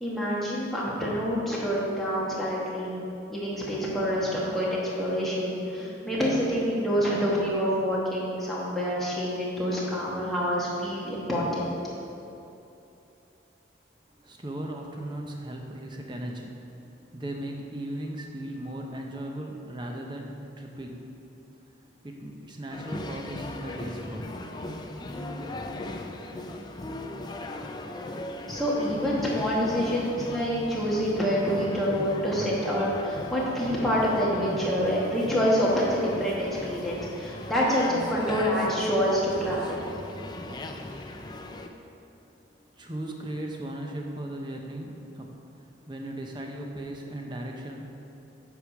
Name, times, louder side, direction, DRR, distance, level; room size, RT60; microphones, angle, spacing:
voice 1, 0.0-3.0 3.3-11.8 24.3-24.4 25.2-26.0 28.5-39.8, equal, ahead, -7 dB, 1.3 m, -27 dB
voice 2, 14.1-21.2 21.7-24.4 25.0-25.2 42.7-47.9, right 1 dB, 25° right, 1 dB, 0.7 m, -37 dB
sound 1, 22.7-41.7, left 1 dB, 20° left, 0.3 m, -38 dB
8.1 x 4.9 x 4.9 m, 2.9 s
head